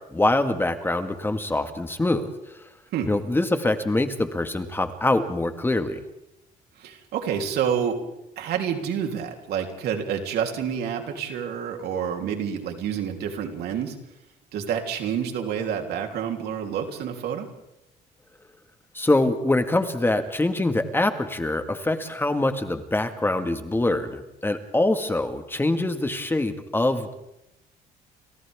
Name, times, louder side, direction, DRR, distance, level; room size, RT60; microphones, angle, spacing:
voice 1, 0.1-2.3 3.1-6.0 18.9-27.1, left 2 dB, 15° left, 7 dB, 1.8 m, -24 dB
voice 2, 6.8-8.0 8.4-14.0 14.5-17.5, right 8 dB, 75° right, 3 dB, 3.4 m, -28 dB
30.0 x 27.0 x 3.6 m, 0.89 s
cardioid pair, 110°, 17 cm